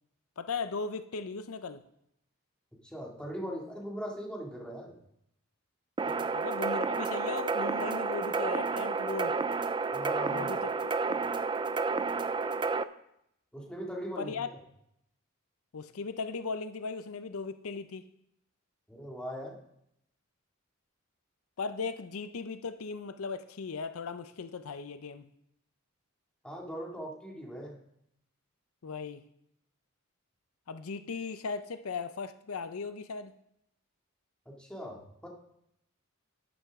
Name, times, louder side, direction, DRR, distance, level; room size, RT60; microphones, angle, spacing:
voice 1, 0.4-1.8 6.3-9.4 10.3-11.2 14.2-14.5 15.7-18.1 21.6-25.3 28.8-29.2 30.7-33.3, left 4 dB, 85° left, 11 dB, 0.6 m, -37 dB
voice 2, 2.8-4.9 6.0-6.2 9.9-10.5 13.5-14.6 18.9-19.6 26.4-27.8 34.5-35.3, equal, 5° left, -2 dB, 2.2 m, -40 dB
sound 1, 6.0-12.8, right 4 dB, 20° right, 0.4 m, -31 dB
11.5 x 11.0 x 3.6 m, 0.76 s
head